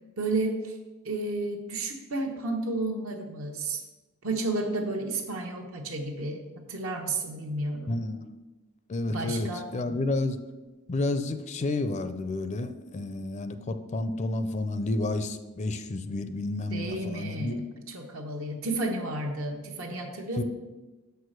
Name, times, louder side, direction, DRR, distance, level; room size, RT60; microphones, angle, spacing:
voice 1, 0.2-0.8 1.0-3.8 4.2-8.0 9.1-9.6 16.7-17.5 17.9-20.4, right 2 dB, 80° right, 2 dB, 1.0 m, -32 dB
voice 2, 7.9-8.3 8.9-10.4 10.9-17.6 20.4-20.5, left 2 dB, 35° left, 10 dB, 0.4 m, -30 dB
6.5 x 4.7 x 6.3 m, 1.1 s
head